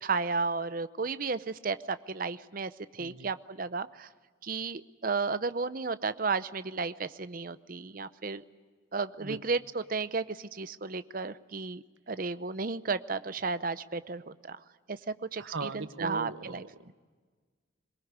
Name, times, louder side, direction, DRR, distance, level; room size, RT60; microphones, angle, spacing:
voice 1, 0.0-4.1 4.4-8.4 8.9-14.6 14.9-16.6, right 4 dB, 45° right, 13 dB, 0.7 m, -33 dB
voice 2, 3.0-3.3 9.2-9.4 15.4-16.9, right 3 dB, 75° right, 12 dB, 1.0 m, -39 dB
22.5 x 21.5 x 9.7 m, 1.5 s
head